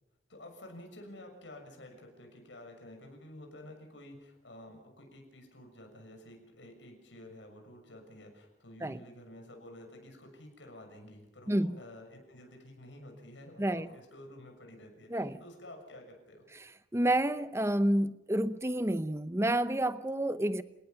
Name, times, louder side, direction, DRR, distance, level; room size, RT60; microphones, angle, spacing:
voice 1, 0.3-16.4, left 1 dB, 80° left, 6.6 m, -51 dB
voice 2, 16.5-20.6, right 1 dB, 15° right, 0.8 m, -29 dB
29.0 x 19.0 x 5.9 m
head